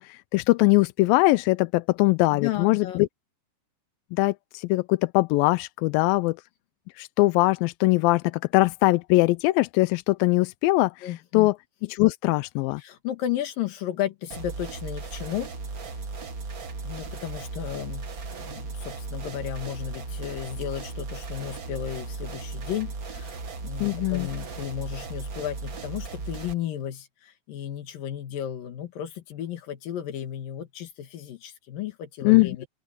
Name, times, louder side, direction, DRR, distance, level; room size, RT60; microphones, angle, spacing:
voice 1, 0.0-2.9 4.1-6.4 7.0-11.1 11.3-11.5 11.9-12.8 23.8-24.3 32.2-32.7, left 21 dB, 80° left, 2.2 m, -21 dB
voice 2, 2.3-3.0 11.0-11.5 12.8-15.5 16.8-18.1 18.4-23.4 23.6-32.7, left 11 dB, 65° left, 3.3 m, -34 dB
sound 1, 14.3-26.5, right 3 dB, 55° right, 0.9 m, -36 dB
open air
omnidirectional pair, 4.4 m